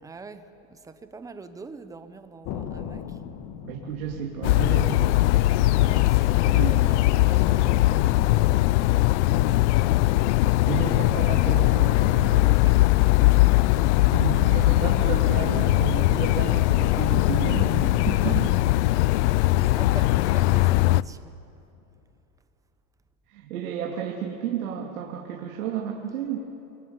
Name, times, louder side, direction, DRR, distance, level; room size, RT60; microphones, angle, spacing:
voice 1, 0.0-3.2 5.4-9.9 12.3-13.1 13.3-13.5 14.2-14.6 18.1-18.6 19.5-21.4, right 4 dB, 10° right, 10 dB, 0.9 m, -44 dB
sound 1, 2.5-6.5 6.8-6.9 7.4-11.5 12.0-16.4 17.1-21.5, left 8 dB, 40° left, 1.7 m, -40 dB
voice 2, 3.6-5.2 6.5-6.9 9.4-9.5 10.1-10.3 10.7-12.7 13.4-13.5 14.1-18.4 19.3-19.5 23.3-26.4, right 8 dB, 85° right, 0 dB, 3.0 m, -32 dB
sound 2, 4.4-21.0, left 17 dB, 55° left, 0.5 m, -20 dB
27.5 x 22.0 x 9.7 m, 2.8 s
supercardioid pair, 155°, 42 cm